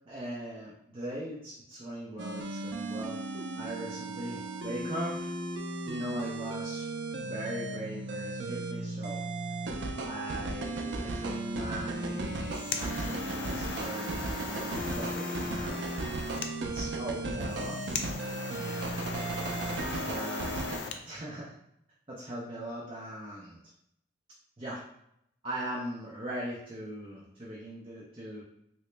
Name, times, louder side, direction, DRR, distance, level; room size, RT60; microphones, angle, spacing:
voice 1, 0.1-3.2 3.6-5.3 5.8-6.9 7.2-9.3 10.0-15.9 16.6-17.8 18.6-19.0 20.0-20.6 21.0-21.5 22.1-23.6 24.6-24.8 25.4-28.4, right 1 dB, 30° right, -6 dB, 0.6 m, -40 dB
sound 1, 2.2-20.8, right 2 dB, 80° right, 0.4 m, -35 dB
sound 2, 12.2-21.0, left 5 dB, 85° left, 0.4 m, -39 dB
3.0 x 2.8 x 3.3 m, 0.75 s
head